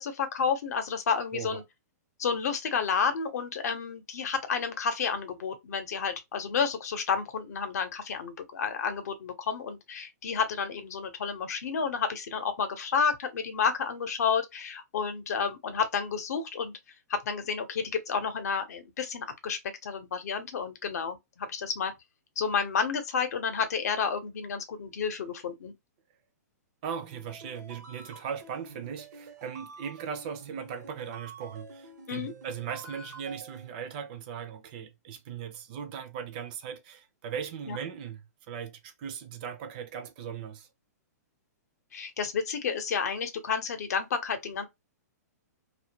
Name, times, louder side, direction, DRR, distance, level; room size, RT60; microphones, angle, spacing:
voice 1, 0.0-1.6 2.2-16.8 17.1-21.9 22.4-25.7 32.1-32.3 37.7-37.8 41.9-44.7, left 6 dB, 65° left, 0.7 m, -30 dB
voice 2, 26.8-40.7, right 7 dB, 30° right, 0.4 m, -38 dB
sound 1, 26.8-33.7, right 3 dB, 80° right, 0.9 m, -48 dB
2.3 x 2.2 x 2.7 m
hypercardioid pair, 160°, 9 cm